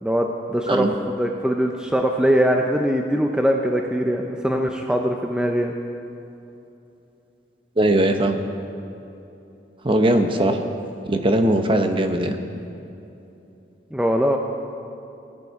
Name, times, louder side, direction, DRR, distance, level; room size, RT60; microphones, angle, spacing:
voice 1, 0.0-5.7 10.5-10.6 13.9-14.4, equal, 5° right, 2 dB, 0.6 m, -22 dB
voice 2, 7.8-8.4 9.8-10.6 11.1-12.4, right 1 dB, 30° right, 6 dB, 0.9 m, -19 dB
19.5 x 9.8 x 4.8 m, 2.9 s
head